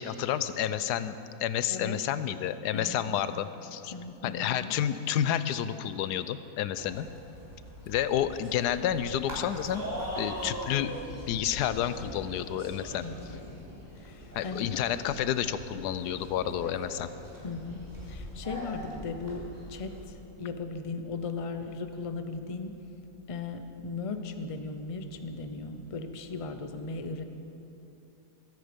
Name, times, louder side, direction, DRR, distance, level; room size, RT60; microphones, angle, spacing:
voice 1, 0.0-3.9 4.2-7.1 7.9-9.9 10.2-10.9 11.3-13.4 14.3-17.1, left 10 dB, 85° left, 13 dB, 1.2 m, -30 dB
voice 2, 1.7-2.0 2.7-3.2 3.9-4.7 13.0-13.3 14.0-14.7 17.4-22.8 23.3-27.2, left 4 dB, 40° left, 8 dB, 0.5 m, -37 dB
sound 1, 6.8-20.0, equal, 10° right, 3.5 m, -42 dB
22.0 x 9.8 x 5.2 m, 2.9 s
omnidirectional pair, 1.7 m